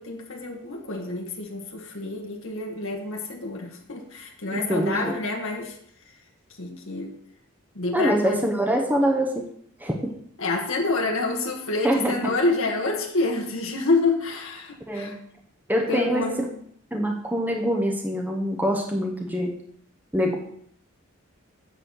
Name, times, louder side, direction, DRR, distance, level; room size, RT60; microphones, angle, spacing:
voice 1, 0.0-5.8 6.0-6.2 6.6-7.2 7.7-8.5 10.4-15.2 15.9-16.6, left 3 dB, 65° left, 1 dB, 1.3 m, -28 dB
voice 2, 4.5-5.1 7.9-9.5 9.8-10.1 11.8-12.3 14.9-15.1 15.7-16.3 16.9-19.5 20.1-20.4, equal, 10° right, 1 dB, 0.8 m, -24 dB
7.7 x 4.2 x 6.3 m, 0.66 s
head